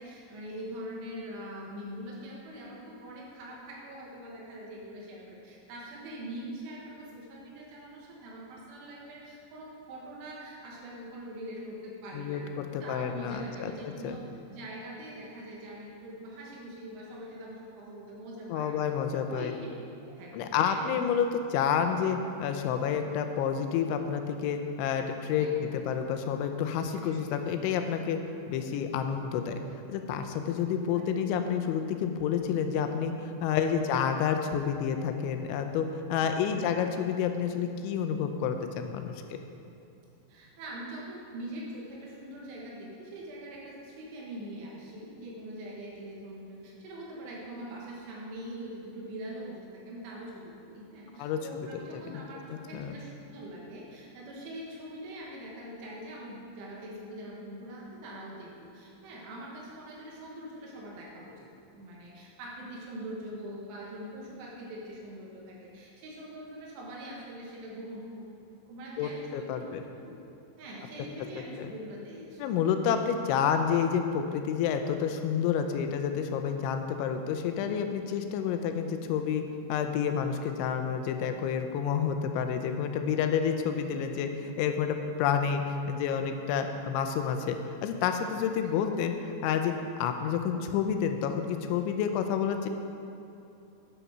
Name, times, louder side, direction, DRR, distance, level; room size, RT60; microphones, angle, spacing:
voice 1, 0.0-12.6 12.8-14.2 14.5-18.7 19.3-19.7 20.0-20.8 25.4-25.6 27.0-27.2 36.2-36.6 40.3-61.5 61.7-68.3 68.7-70.1 70.6-72.6, right 1 dB, 85° right, -3 dB, 4.3 m, -43 dB
voice 2, 12.1-14.2 18.5-19.5 20.3-25.5 25.9-28.2 28.5-29.6 29.9-39.4 51.2-51.7 51.9-52.2 52.5-52.9 69.0-69.8 71.6-71.7 72.4-79.4 79.7-89.7 90.0-92.7, left 7 dB, 85° left, 6 dB, 3.0 m, -29 dB
9.9 x 8.1 x 6.1 m, 2.7 s
omnidirectional pair, 5.4 m